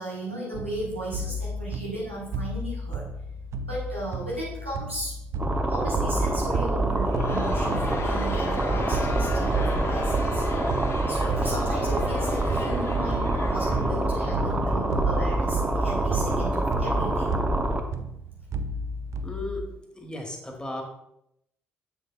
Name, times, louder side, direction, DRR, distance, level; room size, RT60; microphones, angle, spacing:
voice 1, 0.0-3.0 3.6-5.2 5.5-10.8 11.1-17.3, right 1 dB, 90° right, -6 dB, 1.3 m, -35 dB
sound 1, 0.5-19.6, equal, 50° right, 0.4 m, -33 dB
sound 2, 5.4-17.8, right 2 dB, 20° right, 0.8 m, -26 dB
Crowd, 7.0-14.3, left 4 dB, 45° left, 1.0 m, -36 dB
voice 2, 19.2-20.8, left 2 dB, 15° left, 2 dB, 1.5 m, -36 dB
7.2 x 6.7 x 2.3 m, 0.78 s
figure-of-eight pair, 45°, 6 cm